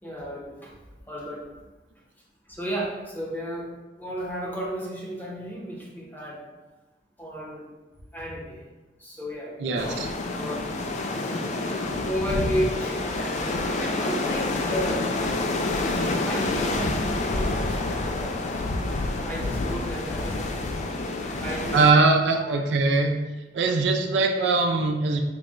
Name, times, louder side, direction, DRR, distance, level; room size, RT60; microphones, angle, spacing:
voice 1, 0.0-0.7 1.1-1.4 2.5-3.7 4.0-6.4 7.2-7.7 8.1-8.6 9.0-10.0 10.4-10.6 12.0-15.1 16.3-18.4 19.3-20.4 21.4-22.1 22.4-22.7, equal, 10° left, -4 dB, 0.7 m, -33 dB
voice 2, 9.6-10.1 21.7-23.2 23.5-25.2, right 3 dB, 75° right, 3 dB, 0.4 m, -21 dB
sound 1, 9.8-21.9, left 2 dB, 40° left, 0.3 m, -28 dB
4.0 x 2.1 x 3.6 m, 1.2 s
head